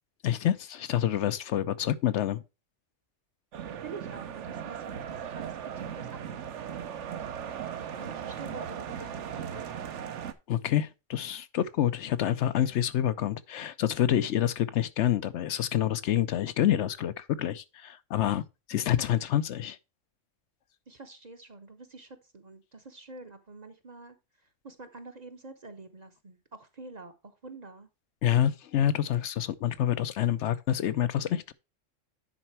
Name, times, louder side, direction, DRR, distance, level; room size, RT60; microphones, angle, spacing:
voice 1, 0.2-2.4 10.5-18.4 18.7-19.8 28.2-31.5, left 11 dB, 70° left, 0.9 m, -27 dB
sound 1, 3.5-10.3, right 8 dB, 70° right, 1.1 m, -38 dB
voice 2, 3.8-6.2 6.7-6.8 7.8-9.9 18.8-19.1 20.9-24.2 24.6-27.9, right 3 dB, 40° right, 0.8 m, -47 dB
10.0 x 4.4 x 4.4 m
omnidirectional pair, 1.3 m